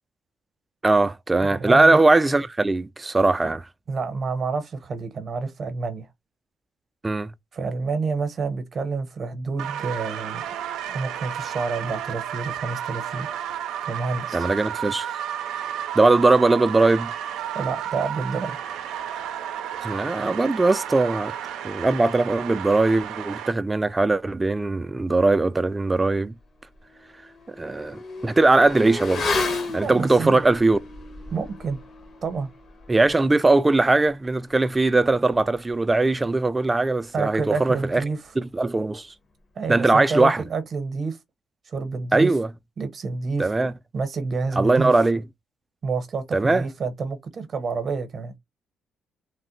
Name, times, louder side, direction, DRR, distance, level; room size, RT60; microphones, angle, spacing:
voice 1, 0.8-3.7 7.0-7.3 14.3-15.2 16.0-17.1 19.8-21.3 21.6-26.3 27.5-29.4 29.7-30.8 32.9-38.0 38.4-39.1 39.7-40.4 42.1-42.5 43.4-43.7 44.6-45.2 46.3-46.7, right 2 dB, 20° right, 0.4 m, -20 dB
voice 2, 1.4-2.0 3.9-6.1 7.5-10.4 10.9-13.3 13.9-14.5 17.5-18.6 29.8-30.4 31.3-31.8 32.2-32.5 37.1-38.2 39.6-41.2 41.7-42.3 42.8-43.5 43.9-44.9 45.8-48.3, right 4 dB, 50° right, 0.8 m, -28 dB
sound 1, 9.6-23.5, right 10 dB, 90° right, 0.4 m, -32 dB
Motorcycle / Accelerating revving vroom, 26.1-26.2 26.6-36.6 36.9-37.0, left 3 dB, 55° left, 1.1 m, -34 dB
3.2 x 2.1 x 3.0 m
cardioid pair, 90°, 0 cm